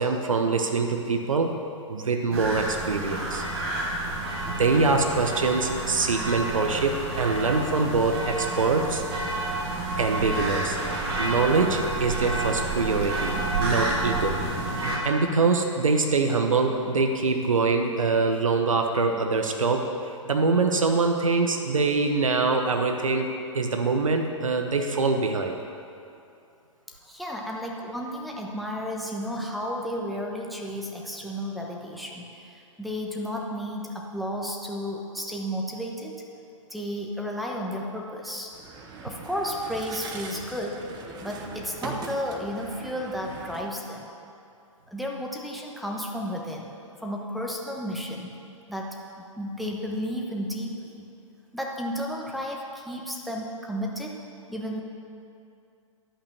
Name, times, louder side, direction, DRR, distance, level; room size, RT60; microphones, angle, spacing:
voice 1, 0.0-1.5 1.9-3.4 4.5-9.0 10.0-10.8 11.2-14.4 15.0-19.9 20.3-25.6, right 4 dB, 75° right, 4 dB, 0.9 m, -24 dB
sound 1, 2.3-15.0, right 2 dB, 45° right, 2.3 m, -29 dB
voice 2, 11.0-11.3 26.9-36.1 36.7-38.5 39.0-40.8 41.2-44.1 44.9-46.7 47.0-48.3 48.7-51.1 51.5-54.1 54.5-54.8, equal, ahead, -1 dB, 1.1 m, -33 dB
sound 2, 38.5-43.6, right 4 dB, 25° right, 0.9 m, -40 dB
11.5 x 5.5 x 7.0 m, 2.6 s
figure-of-eight pair, 115°, 17 cm